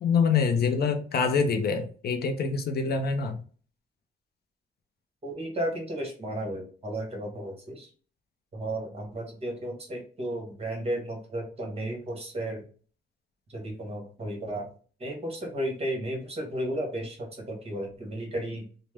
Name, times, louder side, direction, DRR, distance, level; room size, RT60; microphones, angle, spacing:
voice 1, 0.0-3.4, left 5 dB, 55° left, 0.5 m, -25 dB
voice 2, 5.2-7.9 8.5-12.6 13.5-14.7 15.0-18.6, right 1 dB, 30° right, 1.3 m, -33 dB
3.1 x 2.0 x 3.3 m
cardioid pair, 90°, 20 cm